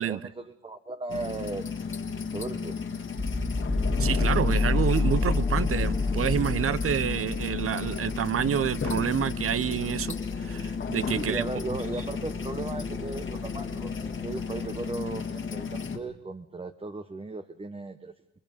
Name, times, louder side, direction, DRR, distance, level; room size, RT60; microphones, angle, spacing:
voice 1, 0.0-1.7 2.3-2.8 11.1-13.9 14.2-18.1, right 3 dB, 20° right, 8 dB, 1.0 m, -36 dB
sound 1, 1.1-16.0, left 5 dB, 40° left, 1.8 m, -34 dB
sound 2, 3.2-15.1, left 3 dB, 5° left, 1.7 m, -31 dB
voice 2, 4.0-11.4, right 9 dB, 45° right, 17 dB, 0.7 m, -28 dB
28.0 x 20.0 x 5.4 m, 0.85 s
cardioid pair, 90°, 30 cm